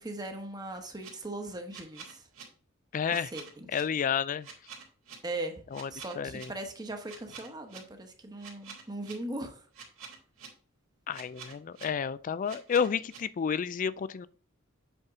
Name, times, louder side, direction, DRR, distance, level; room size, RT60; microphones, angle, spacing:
voice 1, 0.0-2.3 3.1-3.8 5.2-9.7, right 2 dB, 20° right, 1.1 m, -39 dB
sound 1, 1.0-1.1 1.7-2.4 3.1-3.8 4.4-5.2 5.7-6.4 7.1-7.8 8.4-9.1 9.7-10.5 11.1-11.8 12.5-13.2, right 7 dB, 80° right, 2.2 m, -46 dB
voice 2, 2.9-3.3 3.7-4.5 5.7-5.9 6.2-6.5 11.1-14.3, left 7 dB, 40° left, 0.3 m, -30 dB
7.9 x 4.4 x 3.6 m
head